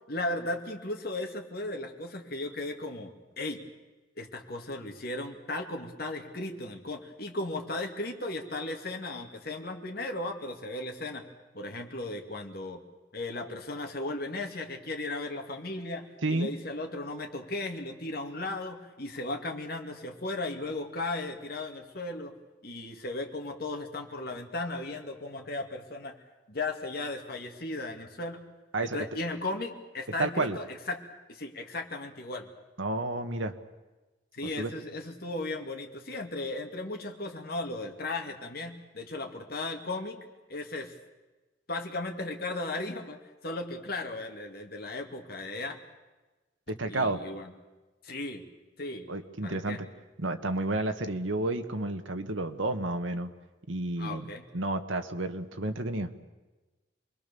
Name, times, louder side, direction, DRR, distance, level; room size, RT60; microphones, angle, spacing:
voice 1, 0.1-3.6 4.2-11.3 11.5-12.8 13.1-22.3 22.6-26.1 26.5-28.4 28.8-31.0 31.3-32.5 34.3-40.2 40.5-40.9 41.7-45.8 46.9-47.5 48.0-48.4 48.8-49.1 49.4-49.8 54.0-54.5, left 2 dB, 50° left, 3 dB, 2.4 m, -36 dB
voice 2, 28.7-29.1 30.2-30.6 32.8-33.5 34.6-34.7 46.7-47.2 49.1-49.9 50.2-53.3 53.7-54.3 54.5-56.1, right 2 dB, 90° right, 7 dB, 1.6 m, -31 dB
27.5 x 21.0 x 7.0 m, 1.2 s
head